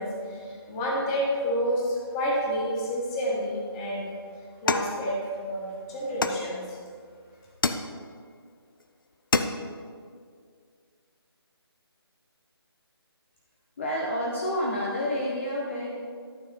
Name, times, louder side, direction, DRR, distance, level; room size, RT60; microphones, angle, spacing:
voice 1, 0.0-4.1 4.6-6.8, equal, 15° left, -3 dB, 1.3 m, -29 dB
sound 1, 4.7-5.6 6.2-6.9 7.6-8.3 8.8-8.9 9.1-9.9, left 3 dB, 55° left, 0.6 m, -29 dB
voice 2, 13.8-16.0, equal, 30° left, -3 dB, 1.0 m, -29 dB
12.5 x 6.7 x 4.4 m, 2.1 s
figure-of-eight pair, 160°, 14 cm